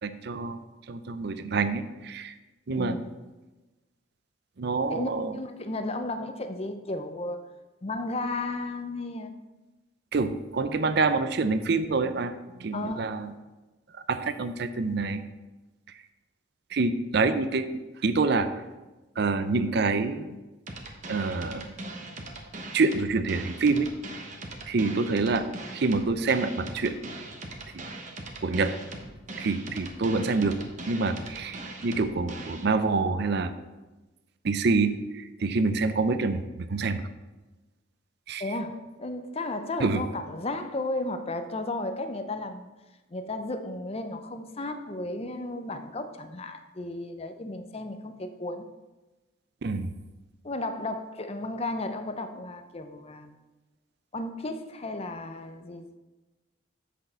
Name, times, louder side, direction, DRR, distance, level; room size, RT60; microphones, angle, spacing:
voice 1, 0.0-0.6 0.9-2.3 2.7-2.9 4.6-5.4 10.1-13.3 14.1-15.2 16.7-18.5 19.2-20.4 21.1-21.6 22.7-23.9 24.7-25.5 25.7-27.0 27.7-27.8 28.4-28.7 29.4-30.6 30.9-33.5 34.4-37.0 38.3-38.5 39.8-40.0 49.6-49.9, right 3 dB, 55° right, 11 dB, 0.5 m, -26 dB
voice 2, 2.7-3.1 4.9-7.4 7.8-9.3 12.7-13.1 38.4-42.7 43.1-48.7 50.4-53.4 54.1-56.0, left 2 dB, 30° left, 8 dB, 0.6 m, -34 dB
sound 1, 20.7-32.7, right 2 dB, 40° right, 1.1 m, -40 dB
8.1 x 6.4 x 4.3 m, 1.1 s
head